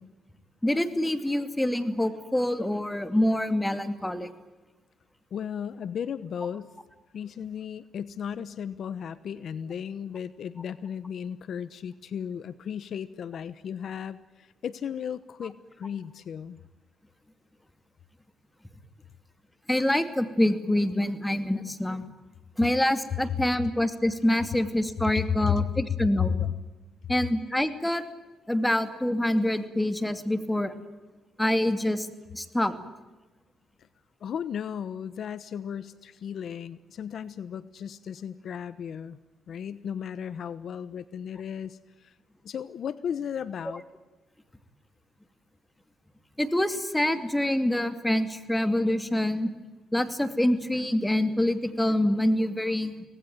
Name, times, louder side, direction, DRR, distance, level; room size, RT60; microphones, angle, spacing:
voice 1, 0.6-4.3 19.7-22.0 22.6-26.5 27.1-28.0 28.5-30.7 31.4-32.1 32.3-32.7 46.4-49.5 49.9-53.0, left 1 dB, 10° left, 9 dB, 2.5 m, -26 dB
voice 2, 5.3-6.7 7.1-16.6 25.0-25.7 26.2-26.5 34.2-39.2 39.5-42.1 42.4-43.8, left 8 dB, 60° left, 15 dB, 1.1 m, -34 dB
25.0 x 19.5 x 9.4 m, 1.2 s
cardioid pair, 90°, 0 cm